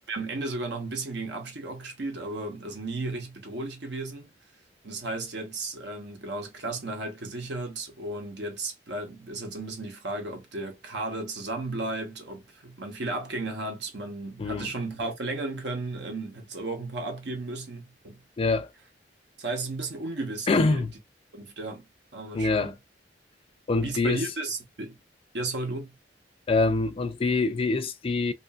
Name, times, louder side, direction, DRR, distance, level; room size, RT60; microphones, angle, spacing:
voice 1, 0.1-4.3 4.8-18.2 19.4-20.8 21.3-21.9 22.1-22.8 23.8-25.0 25.3-25.9, right 2 dB, 70° right, 0.9 m, -34 dB
voice 2, 18.4-18.7 20.5-20.9 22.3-22.7 23.7-24.2 26.5-28.3, left 3 dB, 30° left, 0.3 m, -25 dB
2.8 x 2.5 x 2.3 m
head